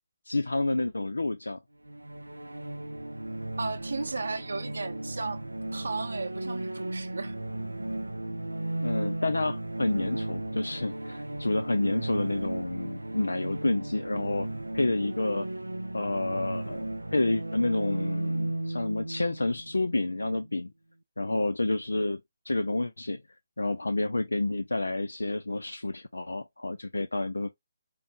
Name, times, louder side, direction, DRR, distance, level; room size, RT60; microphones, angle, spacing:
voice 1, 0.3-1.6 8.8-14.5 14.7-15.5 15.9-20.7 21.2-22.2 22.5-23.2 23.6-27.5, left 2 dB, 75° left, 0.4 m, -29 dB
sound 1, 1.8-20.5, right 1 dB, 85° right, 0.3 m, -35 dB
voice 2, 3.6-5.4 5.7-7.3, right 3 dB, 70° right, 0.8 m, -34 dB
5.0 x 3.0 x 2.6 m
figure-of-eight pair, 140°, 0 cm